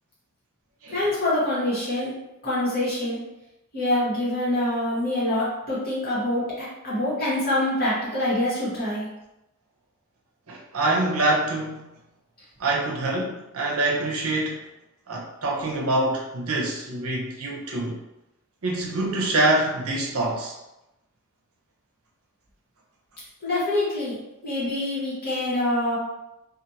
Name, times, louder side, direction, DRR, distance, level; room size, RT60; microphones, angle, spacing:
voice 1, 0.9-2.1 2.4-3.2 3.7-9.1 23.4-24.2 24.4-26.0, left 1 dB, 45° left, -9 dB, 1.2 m, -25 dB
voice 2, 10.5-11.9 12.6-14.6 15.1-18.0 18.6-20.5, right 2 dB, 70° right, -1 dB, 0.6 m, -25 dB
2.5 x 2.4 x 2.7 m, 0.93 s
head